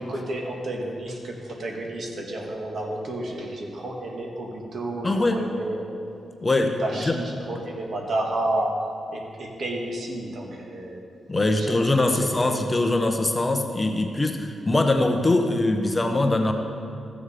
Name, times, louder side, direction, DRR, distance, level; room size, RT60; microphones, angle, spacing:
voice 1, 0.0-5.9 6.6-8.8 9.1-11.1 11.5-12.6, right 1 dB, 60° right, 1 dB, 1.6 m, -31 dB
voice 2, 5.0-5.4 6.4-6.8 7.1-7.2 11.3-16.5, left 2 dB, 20° left, 4 dB, 0.8 m, -22 dB
14.5 x 7.1 x 5.0 m, 2.7 s
cardioid pair, 105°, 0 cm